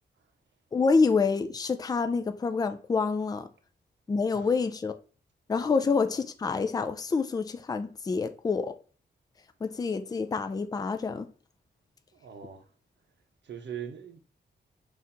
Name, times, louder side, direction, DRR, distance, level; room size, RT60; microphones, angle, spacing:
voice 1, 0.7-3.5 4.1-4.9 5.5-8.7 9.6-11.3, left 4 dB, 20° left, 0.3 m, -27 dB
voice 2, 12.2-12.6 13.4-14.2, right 8 dB, 75° right, 0.7 m, -41 dB
4.2 x 2.5 x 3.9 m
wide cardioid pair, 145°, 19 cm